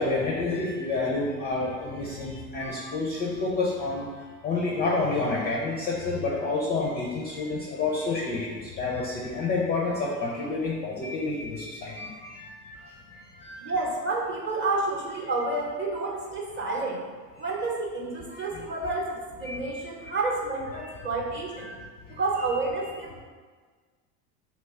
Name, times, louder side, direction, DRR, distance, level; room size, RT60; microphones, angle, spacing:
voice 1, 0.0-4.1 4.4-13.7 18.3-18.4 19.4-19.6 21.6-21.7, left 3 dB, 20° left, -3 dB, 0.4 m, -29 dB
voice 2, 13.6-17.0 17.4-21.7 22.1-23.2, right 3 dB, 25° right, -2 dB, 0.8 m, -30 dB
3.0 x 2.3 x 4.2 m, 1.5 s
hypercardioid pair, 85°, 47 cm